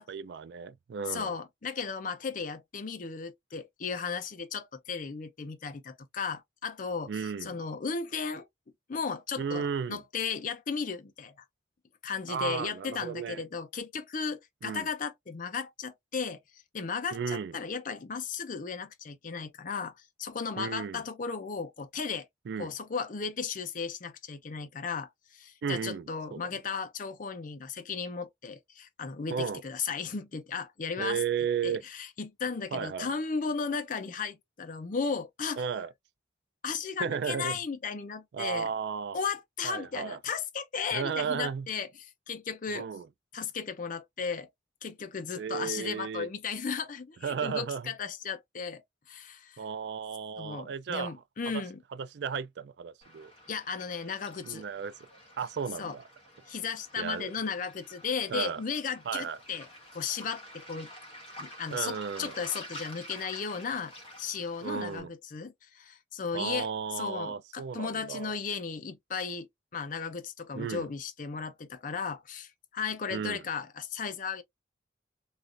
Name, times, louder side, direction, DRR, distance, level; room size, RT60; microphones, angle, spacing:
voice 1, 0.0-1.3 7.1-7.6 9.4-10.0 12.3-13.4 14.6-14.9 17.1-17.6 20.6-21.0 22.5-22.7 25.6-26.5 29.3-29.6 31.0-31.8 32.7-33.1 35.6-35.9 37.0-37.6 38.3-39.2 39.6-40.2 40.9-41.7 42.7-43.1 45.3-46.3 47.2-47.9 49.6-51.1 51.5-51.6 52.0-53.3 54.4-55.0 55.4-56.0 57.0-57.3 58.3-58.6 59.1-59.4 61.7-62.3 64.6-65.1 66.3-68.4 70.5-70.9 73.1-73.4, right 6 dB, 65° right, 0.3 m, -34 dB
voice 2, 1.1-8.5 8.9-9.6 9.9-11.3 12.0-16.4 16.7-19.9 20.2-22.3 22.6-31.2 31.6-35.6 36.6-38.7 39.1-42.9 43.3-44.5 44.8-49.6 50.4-51.8 53.5-54.6 55.8-56.0 56.5-59.7 59.9-60.9 61.4-66.7 67.0-74.4, left 5 dB, 45° left, 0.5 m, -35 dB
Waves surf, 53.0-65.0, equal, 30° left, 1.2 m, -49 dB
3.2 x 2.4 x 2.4 m
head